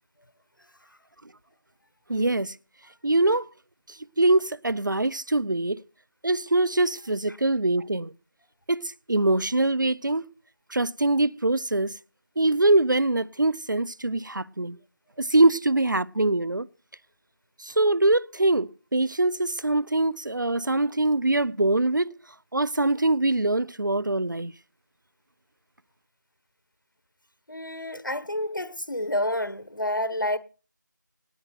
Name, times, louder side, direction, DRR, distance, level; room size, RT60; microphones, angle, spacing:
voice 1, 2.1-2.6 3.0-3.5 3.9-5.8 6.2-8.1 8.7-10.2 10.7-11.9 12.4-14.8 15.2-16.7 17.6-22.1 22.5-24.5, right 2 dB, 70° right, 0.7 m, -23 dB
voice 2, 27.5-30.4, left 1 dB, 80° left, 1.5 m, -29 dB
18.5 x 8.9 x 6.0 m
figure-of-eight pair, 170°, 11 cm